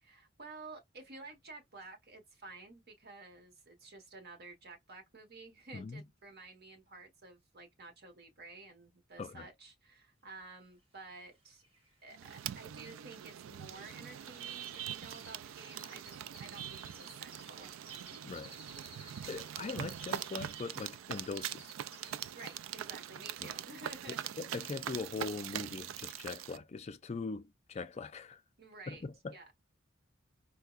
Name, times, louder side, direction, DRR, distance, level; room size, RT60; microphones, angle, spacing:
voice 1, 0.0-11.6 12.0-17.7 22.3-24.2 28.6-29.1 29.3-29.5, right 3 dB, 55° right, 1.2 m, -52 dB
voice 2, 5.7-6.0 9.2-9.5 18.2-18.5 19.0-21.7 24.1-28.4 28.9-29.4, left 4 dB, 35° left, 0.4 m, -41 dB
sound 1, 11.1-11.2 11.4-22.8 23.2-23.6 24.0-24.1, right 2 dB, 30° right, 1.7 m, -57 dB
sound 2, 12.1-26.6, right 10 dB, 80° right, 0.3 m, -43 dB
4.5 x 2.1 x 2.3 m
head